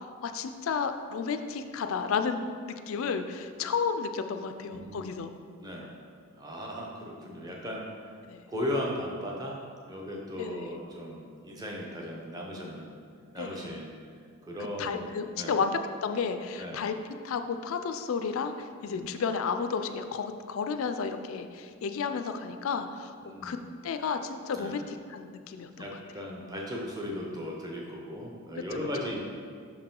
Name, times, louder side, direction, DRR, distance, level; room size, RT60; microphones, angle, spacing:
voice 1, 0.0-5.3 8.3-8.4 10.4-10.7 13.4-13.8 14.8-16.9 17.2-23.1 23.4-23.6 23.8-25.9, left 5 dB, 75° left, 8 dB, 0.4 m, -32 dB
voice 2, 4.7-5.2 5.6-6.0 6.4-8.0 8.5-9.6 9.9-13.0 13.3-13.9 14.4-15.1 15.4-15.6 16.6-16.8 18.8-19.1 23.2-23.6 24.5-24.8 25.8-29.2, left 1 dB, 20° right, -2 dB, 0.7 m, -37 dB
5.9 x 4.7 x 3.7 m, 2.1 s
head